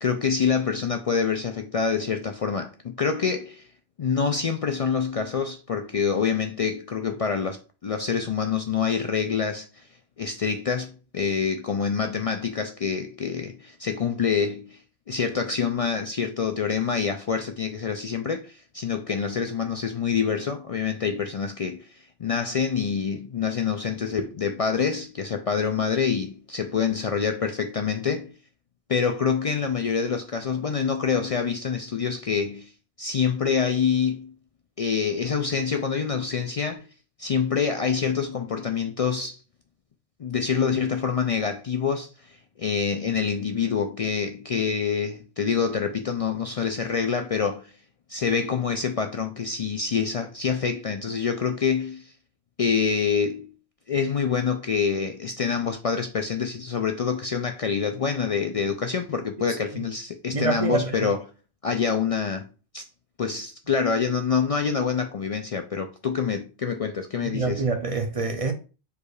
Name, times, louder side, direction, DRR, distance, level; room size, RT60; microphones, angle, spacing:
voice 1, 0.0-3.6 4.0-9.9 10.2-14.8 15.1-28.3 28.9-32.7 33.0-34.3 34.8-36.8 37.2-39.4 40.2-47.7 48.1-52.1 52.6-53.5 53.9-61.2 61.6-62.5 62.7-62.8 63.2-67.6, left 6 dB, 60° left, 0.3 m, -26 dB
voice 2, 60.3-61.1 67.2-68.5, right 4 dB, 40° right, 0.6 m, -26 dB
4.8 x 2.4 x 4.7 m
omnidirectional pair, 1.1 m